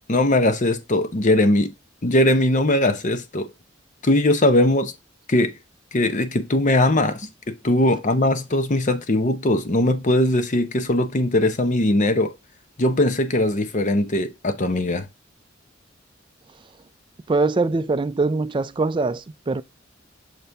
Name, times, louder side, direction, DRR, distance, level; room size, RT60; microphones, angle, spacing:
voice 1, 0.1-1.7 2.0-3.5 4.0-4.9 5.3-5.5 5.9-12.3 12.8-15.1, left 1 dB, 40° left, 0.8 m, -20 dB
voice 2, 17.3-19.6, right 3 dB, 25° right, 0.4 m, -22 dB
6.6 x 4.3 x 3.3 m
head